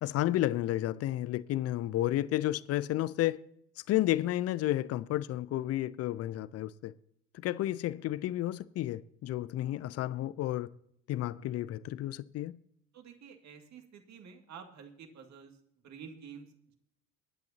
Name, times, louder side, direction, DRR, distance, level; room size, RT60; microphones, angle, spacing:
voice 1, 0.0-3.4 3.9-6.9 7.3-10.7 11.1-12.6, left 14 dB, 40° left, 0.6 m, -31 dB
voice 2, 12.9-15.6 15.8-16.5, right 7 dB, 45° right, 2.3 m, -49 dB
23.5 x 10.5 x 2.8 m
figure-of-eight pair, 60°, 39 cm